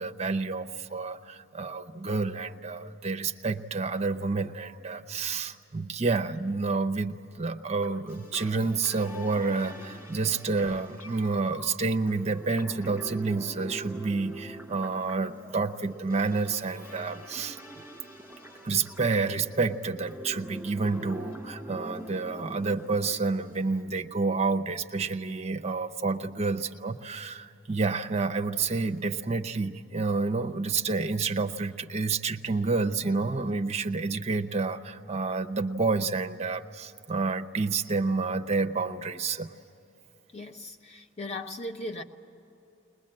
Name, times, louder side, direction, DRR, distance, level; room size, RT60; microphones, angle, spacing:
voice 1, 0.0-17.6 18.6-39.5, right 4 dB, 30° right, 0.6 m, -29 dB
sound 1, 7.8-23.8, right 1 dB, 5° left, 4.9 m, -44 dB
voice 2, 40.3-42.0, left 1 dB, 30° left, 1.0 m, -38 dB
21.0 x 21.0 x 8.8 m
head